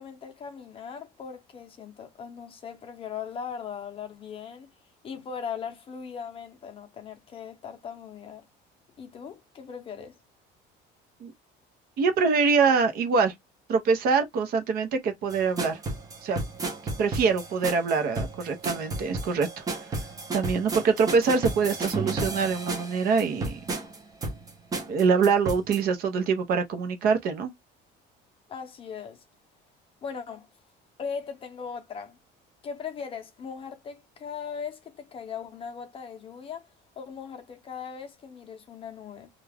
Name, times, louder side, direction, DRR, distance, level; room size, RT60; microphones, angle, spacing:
voice 1, 0.0-4.7 5.0-8.4 9.0-10.2 28.5-29.2 30.0-30.5 31.0-32.2 32.6-36.6 37.0-39.3, left 6 dB, 30° left, 0.7 m, -39 dB
voice 2, 12.0-13.3 13.7-15.8 16.2-16.4 17.0-19.9 20.3-23.6 24.9-27.5, right 5 dB, 55° right, 0.8 m, -24 dB
sound 1, 15.3-25.8, right 2 dB, 20° right, 0.6 m, -33 dB
2.4 x 2.3 x 3.3 m
cardioid pair, 165°, 19 cm